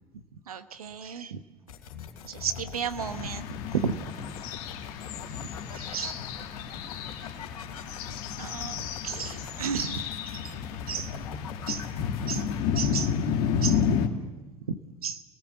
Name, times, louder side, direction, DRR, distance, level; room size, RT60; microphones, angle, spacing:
voice 1, 0.5-1.4 2.2-3.5 3.7-4.0 5.7-6.2 8.4-10.1 10.4-10.5 10.9-11.1 11.7-11.8 12.3-12.4 12.7-13.1 13.6-13.8 14.7-15.2, right 6 dB, 80° right, 10 dB, 1.2 m, -33 dB
sound 1, 1.7-12.6, left 7 dB, 75° left, 2.9 m, -43 dB
sound 2, 3.0-14.1, left 7 dB, 60° left, 2.3 m, -31 dB
28.5 x 18.5 x 7.2 m, 1.2 s
figure-of-eight pair, 70°, 19 cm